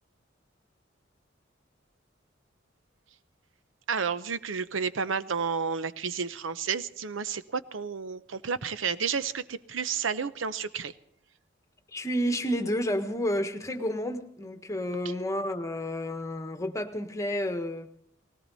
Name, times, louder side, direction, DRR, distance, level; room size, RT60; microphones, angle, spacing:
voice 1, 3.9-10.9, right 6 dB, 80° right, 14 dB, 0.8 m, -31 dB
voice 2, 11.9-17.9, equal, 15° left, 6 dB, 1.4 m, -30 dB
19.0 x 18.0 x 4.1 m, 0.66 s
head